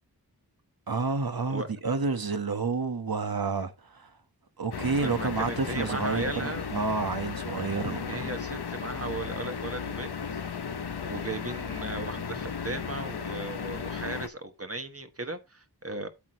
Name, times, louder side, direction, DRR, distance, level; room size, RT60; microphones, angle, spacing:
voice 1, 0.9-4.1 4.6-6.3 6.7-8.3, right 4 dB, 60° right, 1.3 m, -29 dB
sound 1, 4.7-14.3, left 6 dB, 70° left, 0.9 m, -35 dB
voice 2, 4.9-6.7 8.1-10.4 11.0-16.1, right 2 dB, 35° right, 1.3 m, -36 dB
8.5 x 8.2 x 3.1 m
wide cardioid pair, 60°, 41 cm